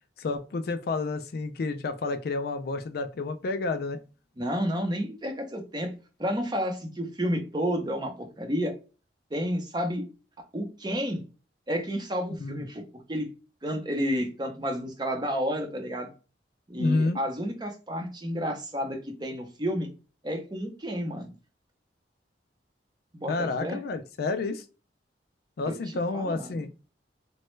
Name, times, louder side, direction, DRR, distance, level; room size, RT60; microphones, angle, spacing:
voice 1, 0.2-4.0 12.4-12.6 16.8-17.2 23.3-24.6 25.6-26.7, left 3 dB, 60° left, 9 dB, 0.4 m, -30 dB
voice 2, 4.4-5.9 6.2-8.7 9.3-10.0 10.5-11.2 11.7-12.8 13.1-13.3 13.6-16.1 16.7-19.9 20.2-21.3 23.1-23.8 25.7-26.6, equal, 25° right, 4 dB, 0.6 m, -31 dB
3.1 x 2.2 x 3.1 m, 0.33 s
head